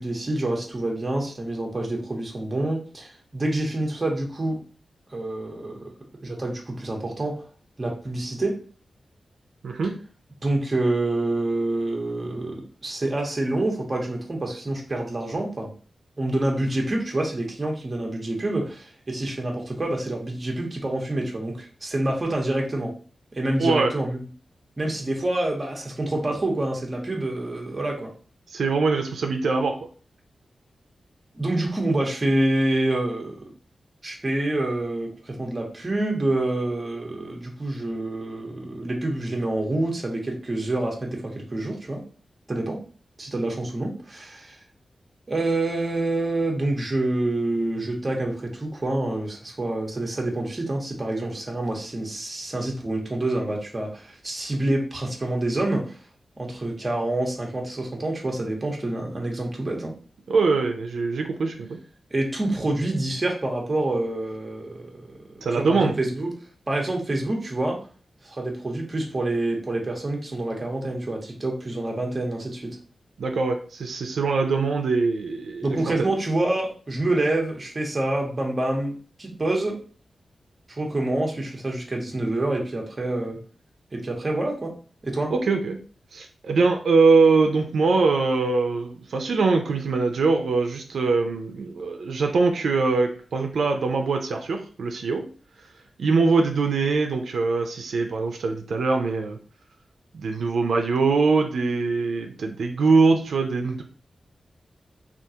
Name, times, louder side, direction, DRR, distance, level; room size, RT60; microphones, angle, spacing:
voice 1, 0.0-4.6 5.1-5.9 6.2-7.4 7.8-8.6 10.4-15.7 16.2-22.9 23.3-24.2 24.8-28.1 31.3-33.5 34.0-42.0 42.5-42.8 43.2-44.6 45.3-56.0 56.4-59.9 62.1-65.3 65.6-66.3 66.7-67.8 68.2-72.8 75.6-79.8 80.7-83.4 83.9-84.7 85.0-85.3, right 2 dB, 25° right, 0 dB, 0.7 m, -27 dB
voice 2, 23.6-23.9 28.5-29.8 60.3-61.8 65.4-66.0 73.2-75.8 85.3-85.8 86.1-95.2 96.0-99.4 100.1-103.8, right 4 dB, 80° right, 4 dB, 0.4 m, -22 dB
3.5 x 2.4 x 2.7 m, 0.40 s
wide cardioid pair, 160°, 0 cm